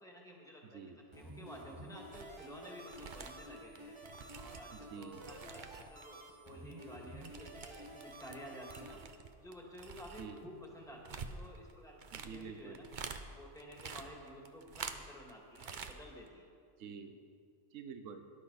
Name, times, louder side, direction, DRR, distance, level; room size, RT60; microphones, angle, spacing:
voice 1, 0.0-3.9 4.4-12.8 13.3-16.5, equal, 5° left, -2 dB, 2.1 m, -52 dB
voice 2, 0.6-1.0 4.7-5.2 10.2-10.4 12.1-12.8 16.8-17.2 17.7-18.3, right 6 dB, 85° right, 6 dB, 1.1 m, -48 dB
sound 1, 1.1-9.0, right 1 dB, 25° right, 1.3 m, -52 dB
sound 2, 2.1-2.4 2.8-6.0 6.3-8.4 8.7-13.2 13.6-15.3 15.6-16.0 16.3-16.4, right 5 dB, 45° right, 0.8 m, -48 dB
18.0 x 11.5 x 4.2 m, 2.3 s
omnidirectional pair, 1.3 m